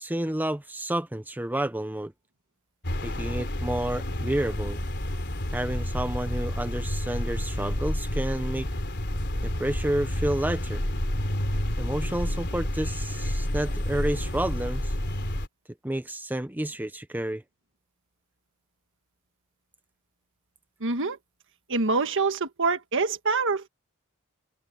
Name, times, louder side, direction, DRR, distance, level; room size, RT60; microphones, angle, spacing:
voice 1, 0.0-2.1 3.0-4.8 5.5-8.7 9.4-10.8 11.8-15.0 15.8-17.4, right 1 dB, 10° right, 0.7 m, -30 dB
sound 1, 2.8-15.5, left 1 dB, 55° left, 3.7 m, -30 dB
voice 2, 20.8-21.2 21.7-23.7, right 4 dB, 60° right, 1.5 m, -25 dB
head